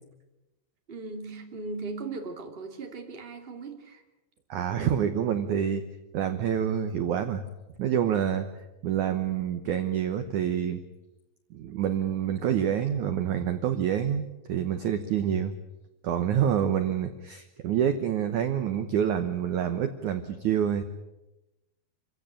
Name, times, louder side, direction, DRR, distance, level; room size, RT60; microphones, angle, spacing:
voice 1, 0.9-4.0 16.6-16.7, right 3 dB, 20° right, 4 dB, 1.6 m, -38 dB
voice 2, 4.5-5.8 6.1-7.4 7.8-8.5 8.8-10.8 11.5-15.5 16.0-20.8, right 9 dB, 75° right, 9 dB, 1.7 m, -27 dB
27.0 x 16.0 x 8.9 m, 1.0 s
omnidirectional pair, 5.0 m